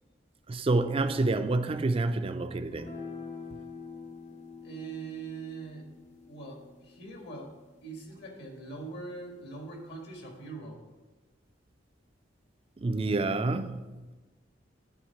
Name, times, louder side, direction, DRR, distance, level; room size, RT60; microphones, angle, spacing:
voice 1, 0.5-2.9 12.8-13.9, right 2 dB, 30° right, 0.4 m, -28 dB
sound 1, 2.7-9.3, left 4 dB, 40° left, 0.9 m, -47 dB
voice 2, 4.6-5.9 6.3-7.5 7.8-10.8 13.7-14.1, right 3 dB, 65° left, 1.7 m, -42 dB
9.3 x 3.8 x 5.8 m
head